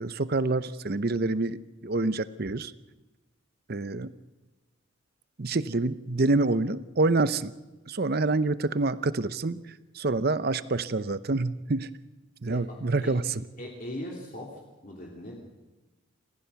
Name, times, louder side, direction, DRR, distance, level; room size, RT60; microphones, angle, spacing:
voice 1, 0.0-2.7 3.7-4.1 5.4-7.5 7.9-9.6 9.9-11.9 12.4-13.2, right 3 dB, 45° right, 14 dB, 0.7 m, -27 dB
voice 2, 12.4-13.1 13.6-15.4, left 1 dB, 40° left, -2 dB, 3.2 m, -40 dB
28.5 x 15.0 x 7.0 m, 1.1 s
head